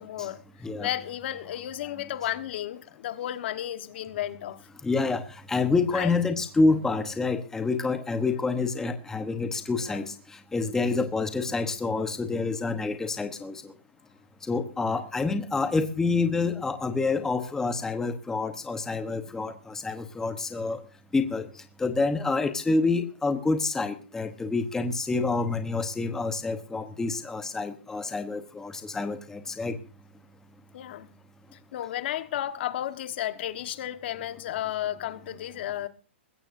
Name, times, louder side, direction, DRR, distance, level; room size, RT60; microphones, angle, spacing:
voice 1, 0.0-4.7 5.9-6.1 8.3-8.5 9.8-10.1 30.7-31.1 31.5-35.9, left 12 dB, 55° left, 1.4 m, -33 dB
voice 2, 4.8-10.1 10.5-13.7 14.5-20.8 21.1-21.5 21.8-29.8, left 3 dB, 5° left, 1.0 m, -27 dB
21.0 x 16.0 x 2.7 m
hypercardioid pair, 150°, 7 cm